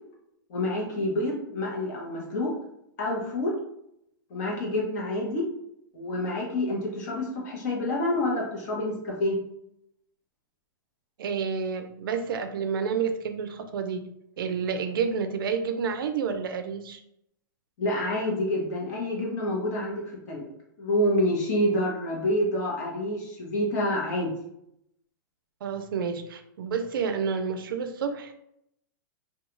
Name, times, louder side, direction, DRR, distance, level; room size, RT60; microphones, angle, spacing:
voice 1, 0.5-2.5 3.0-3.5 4.3-5.5 5.9-9.4 17.8-20.5 20.8-24.3, left 1 dB, 50° left, -2 dB, 0.8 m, -28 dB
voice 2, 11.2-14.1 14.4-17.0 25.6-28.3, right 6 dB, 80° right, 8 dB, 0.4 m, -29 dB
2.3 x 2.3 x 2.9 m, 0.77 s
hypercardioid pair, 135°, 12 cm